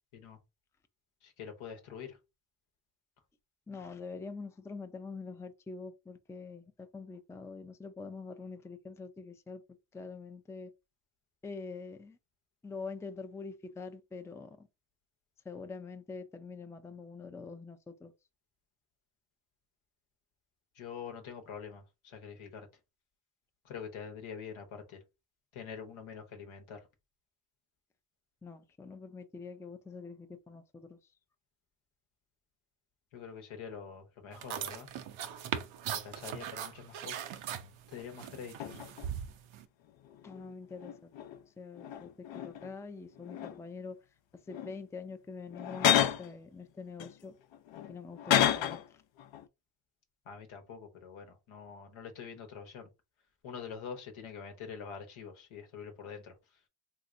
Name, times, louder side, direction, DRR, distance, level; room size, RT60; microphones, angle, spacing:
voice 1, 1.2-2.2 20.8-22.7 23.6-25.0 25.5-26.8 33.1-34.9 35.9-37.5 37.9-38.8 50.3-52.9 53.4-56.3, left 6 dB, 85° left, 1.0 m, -45 dB
voice 2, 3.7-9.6 9.9-10.7 11.4-12.2 12.6-14.7 15.5-18.1 28.4-31.0 40.2-41.1 41.6-44.0 44.5-47.3 47.9-49.0, left 4 dB, 5° left, 0.3 m, -45 dB
sound 1, 34.3-39.7, right 9 dB, 80° right, 0.6 m, -40 dB
sound 2, 37.9-38.0 38.6-39.1 39.9-41.4 41.7-42.8 43.2-43.8 44.5-44.7 45.5-46.3 47.0-48.9 49.2-49.4, left 10 dB, 70° left, 0.6 m, -31 dB
3.2 x 2.8 x 2.5 m
cardioid pair, 55°, 47 cm